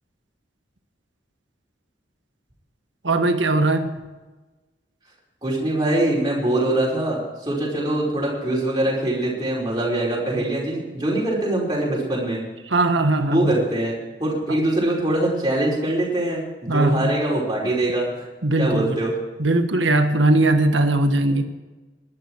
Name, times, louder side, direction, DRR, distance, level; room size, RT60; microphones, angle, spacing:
voice 1, 3.0-4.0 12.7-13.6 14.5-14.6 16.7-17.1 18.4-19.0 19.4-21.4, right 2 dB, 80° right, 7 dB, 1.6 m, -19 dB
voice 2, 5.4-12.4 13.3-18.3 18.6-19.1, right 1 dB, 20° right, -5 dB, 5.0 m, -23 dB
19.5 x 12.0 x 4.7 m, 1.2 s
head